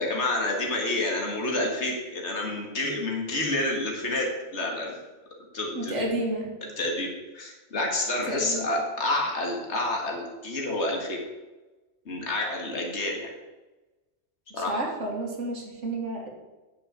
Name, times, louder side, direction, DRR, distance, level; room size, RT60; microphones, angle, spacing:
voice 1, 0.0-5.0 5.5-6.1 6.8-11.2 12.1-13.3 14.5-14.8, left 2 dB, 70° left, 0 dB, 2.3 m, -29 dB
voice 2, 5.8-6.5 8.3-8.7 14.6-16.3, right 1 dB, 85° right, 1 dB, 2.2 m, -31 dB
9.5 x 6.2 x 7.5 m, 1.1 s
omnidirectional pair, 1.2 m